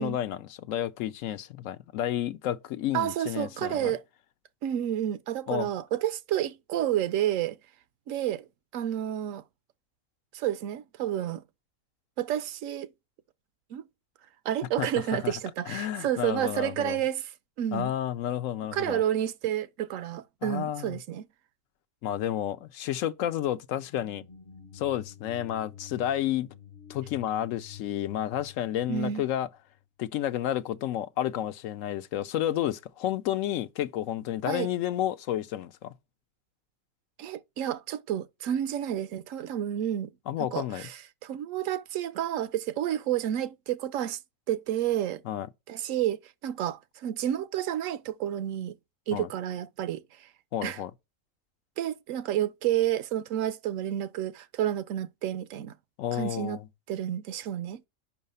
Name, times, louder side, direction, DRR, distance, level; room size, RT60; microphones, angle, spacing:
voice 1, 0.0-3.9 5.5-5.7 14.8-15.3 15.7-17.0 17.7-19.0 20.4-21.0 22.0-24.2 24.7-26.5 26.9-29.5 30.0-35.9 40.3-40.9 45.2-45.5 49.1-49.3 50.5-50.9 56.0-56.7, left 11 dB, 80° left, 1.0 m, -31 dB
voice 2, 2.9-4.0 4.6-7.6 8.1-8.4 8.7-9.4 10.3-11.4 12.2-12.9 13.7-13.8 14.4-17.2 17.6-17.9 18.7-21.3 28.9-29.2 34.5-34.7 37.2-40.1 40.5-44.2 44.5-45.2 45.7-48.8 49.1-50.3 50.6-50.8 51.8-55.7 56.1-56.6 56.9-57.9, right 11 dB, 75° right, 0.9 m, -30 dB
sound 1, 23.8-29.8, left 9 dB, 55° left, 1.0 m, -49 dB
5.6 x 4.7 x 5.3 m
omnidirectional pair, 1.4 m